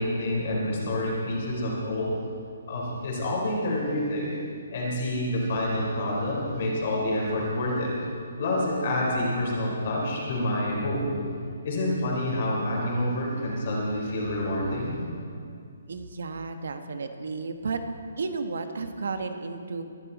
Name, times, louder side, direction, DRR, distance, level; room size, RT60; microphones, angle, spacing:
voice 1, 0.0-2.1 2.7-4.3 4.7-7.9 8.4-11.3 11.6-15.0, left 1 dB, 35° left, -3 dB, 4.0 m, -28 dB
voice 2, 15.9-17.8 18.2-19.8, right 4 dB, 65° right, 7 dB, 1.2 m, -33 dB
22.5 x 12.0 x 4.1 m, 2.3 s
hypercardioid pair, 175°, 0 cm